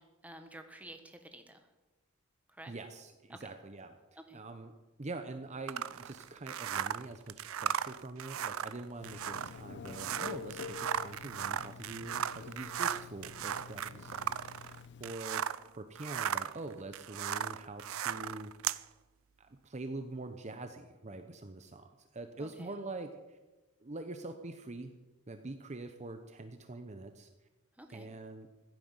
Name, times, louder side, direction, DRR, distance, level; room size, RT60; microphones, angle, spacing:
voice 1, 0.0-1.7 2.5-2.7 3.3-3.4 4.2-4.4 22.4-22.7 27.8-28.1, right 1 dB, 5° right, 6 dB, 1.4 m, -51 dB
voice 2, 2.7-4.7 5.0-14.7 15.0-15.4 15.7-18.5 19.4-23.4 23.8-24.9 25.3-27.3 27.9-28.5, right 2 dB, 35° right, 7 dB, 0.8 m, -44 dB
sound 1, 5.7-15.7 15.9-18.8, right 9 dB, 75° right, 0.5 m, -37 dB
Telephone, 9.0-15.1, left 5 dB, 55° left, 0.5 m, -48 dB
15.5 x 9.3 x 7.8 m, 1.2 s
head